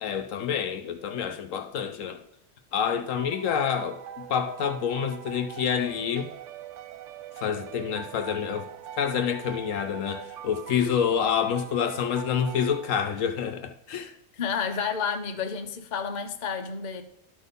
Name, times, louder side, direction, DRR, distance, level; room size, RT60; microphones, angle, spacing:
voice 1, 0.0-2.2 2.7-4.0 4.3-6.3 7.4-8.7 9.0-14.1, left 8 dB, 75° left, 1.1 m, -28 dB
sound 1, 3.2-13.5, right 10 dB, 70° right, 0.9 m, -42 dB
voice 2, 14.3-17.0, left 6 dB, 40° left, 0.8 m, -30 dB
12.0 x 4.2 x 5.2 m
omnidirectional pair, 1.4 m